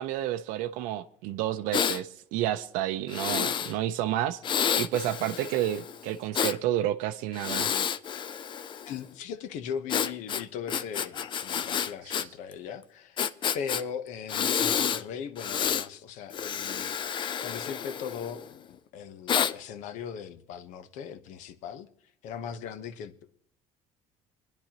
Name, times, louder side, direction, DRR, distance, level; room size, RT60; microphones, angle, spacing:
voice 1, 0.0-4.4 4.8-7.7 12.1-12.2, right 12 dB, 75° right, 0.5 m, -30 dB
Breathing, 1.7-2.0 3.1-3.7 4.4-6.6 7.3-9.0 9.9-12.3 12.5-12.6 13.2-13.8 14.3-15.0 15.4-15.9 16.3-18.5 19.3-19.5, left 8 dB, 35° left, 0.5 m, -29 dB
voice 2, 8.9-13.2 13.5-17.0 17.4-21.9 22.2-23.4, left 7 dB, 70° left, 1.0 m, -39 dB
22.5 x 10.5 x 2.9 m
cardioid pair, 110°, 13 cm